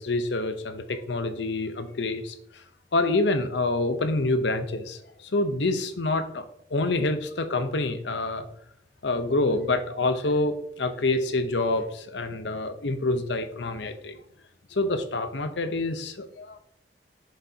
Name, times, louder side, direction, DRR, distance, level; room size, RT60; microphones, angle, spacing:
voice 1, 0.0-2.6 2.9-6.4 6.7-8.5 9.0-14.2 14.7-16.6, left 2 dB, 85° left, 9 dB, 0.8 m, -27 dB
7.8 x 6.6 x 2.8 m, 0.70 s
head